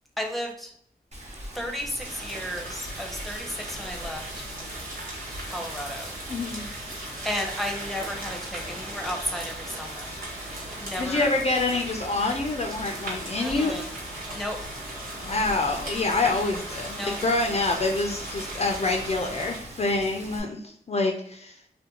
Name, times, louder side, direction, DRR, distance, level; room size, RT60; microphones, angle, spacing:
voice 1, 0.2-0.7 1.5-4.4 5.4-6.1 7.2-10.1 10.8-11.3 13.4-13.9 14.3-14.6 16.9-17.2, equal, ahead, 2 dB, 0.6 m, -33 dB
Rain, 1.1-20.4, right 1 dB, 40° right, 0.8 m, -43 dB
sound 1, 2.0-19.6, right 1 dB, 60° right, 1.1 m, -38 dB
voice 2, 6.3-6.6 11.0-13.8 15.2-21.6, left 3 dB, 40° left, 2 dB, 0.4 m, -26 dB
2.5 x 2.2 x 2.8 m, 0.66 s
cardioid pair, 50°, 17 cm